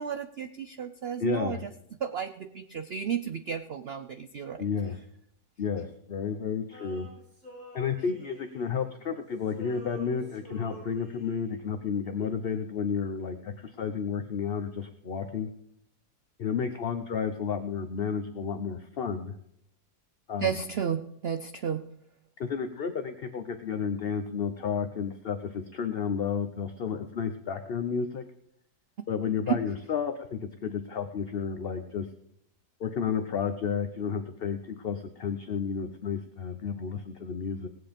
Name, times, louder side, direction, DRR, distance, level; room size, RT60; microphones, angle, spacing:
voice 1, 0.0-1.7 2.0-4.6 20.4-21.8 29.5-29.6, right 8 dB, 60° right, 10 dB, 0.6 m, -32 dB
voice 2, 1.2-1.6 4.6-5.0 5.6-7.1 7.7-15.5 16.4-19.3 20.3-20.6 22.4-28.2 29.1-32.1 32.8-37.7, left 6 dB, 50° left, 7 dB, 0.7 m, -32 dB
Male singing, 6.7-9.2 9.4-11.6, right 1 dB, 45° right, 4.8 m, -49 dB
19.0 x 7.9 x 5.1 m, 0.74 s
omnidirectional pair, 1.8 m